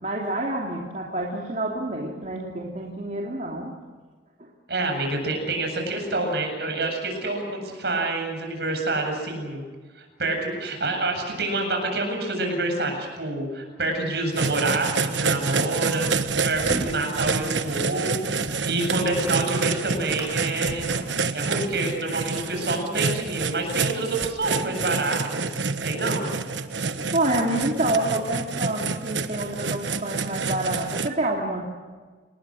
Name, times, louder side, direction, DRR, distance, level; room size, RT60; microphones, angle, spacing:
voice 1, 0.0-3.8 4.4-4.5 26.9-31.6, right 1 dB, 40° right, -2 dB, 2.9 m, -28 dB
voice 2, 4.7-9.6 10.0-16.1 16.4-20.9 21.3-25.4 25.8-26.3, right 2 dB, 65° right, 3 dB, 8.0 m, -27 dB
sound 1, 14.3-31.1, right 4 dB, 85° right, 1.3 m, -28 dB
sound 2, 16.0-17.9 18.1-18.6 19.0-19.4 19.7-20.3 20.6-22.6 23.2-23.8 24.2-24.3, right 1 dB, 15° right, 6.1 m, -39 dB
29.0 x 20.5 x 6.5 m, 1.4 s
head